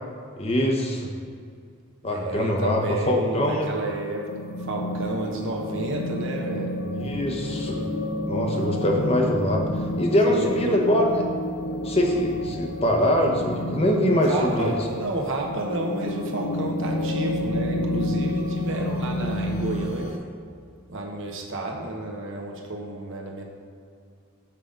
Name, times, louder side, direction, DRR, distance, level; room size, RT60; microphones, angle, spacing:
voice 1, 0.4-1.1 2.0-3.7 6.9-7.8 8.3-11.2 11.8-14.7, left 1 dB, 25° left, 1 dB, 0.8 m, -23 dB
voice 2, 2.1-4.3 4.6-6.8 10.2-10.8 14.1-20.2 20.9-23.4, right 1 dB, 55° right, 0 dB, 1.1 m, -31 dB
sound 1, 3.7-20.2, left 1 dB, 70° left, 0.8 m, -30 dB
5.7 x 5.1 x 6.5 m, 2.3 s
head